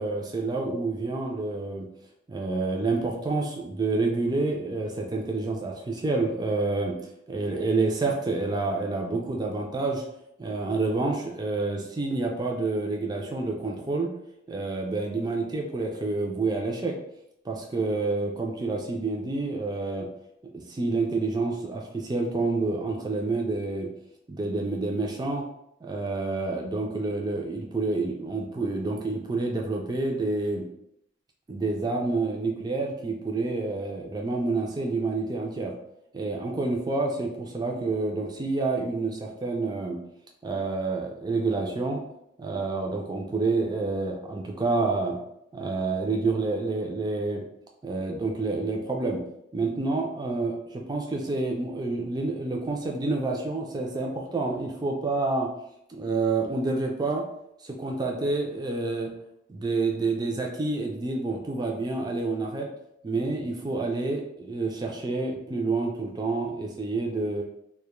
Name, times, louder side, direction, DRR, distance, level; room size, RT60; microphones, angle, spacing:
voice 1, 0.0-1.9 2.3-7.0 7.3-10.0 10.4-14.1 14.5-17.0 17.5-20.1 20.5-23.9 24.3-25.5 25.8-30.7 31.5-35.7 36.1-40.0 40.4-42.0 42.4-45.2 45.5-47.4 47.8-49.2 49.5-55.5 55.9-57.2 57.6-59.1 59.5-62.7 63.0-67.4, right 3 dB, 20° right, 1 dB, 0.3 m, -28 dB
2.2 x 2.0 x 2.9 m, 0.78 s
head